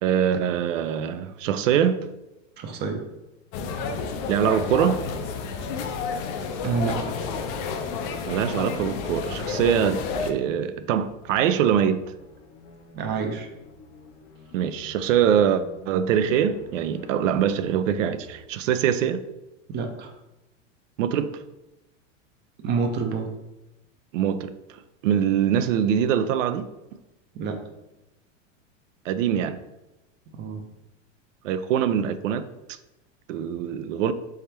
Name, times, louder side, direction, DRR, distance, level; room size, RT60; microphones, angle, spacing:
voice 1, 0.0-2.0 4.3-5.0 8.2-12.0 14.5-19.2 21.0-21.4 24.1-24.5 25.0-26.6 29.1-29.6 31.4-32.5 33.3-34.1, right 9 dB, 75° right, 0.5 m, -23 dB
voice 2, 2.6-3.0 6.6-7.2 12.9-13.5 19.7-20.1 22.6-23.3 27.3-27.6 30.3-30.7, right 5 dB, 25° right, 0.6 m, -28 dB
sound 1, 3.5-10.3, left 5 dB, 40° left, 0.5 m, -30 dB
sound 2, 11.0-18.7, left 3 dB, 65° left, 0.8 m, -49 dB
3.5 x 3.3 x 4.3 m
supercardioid pair, 130°, 39 cm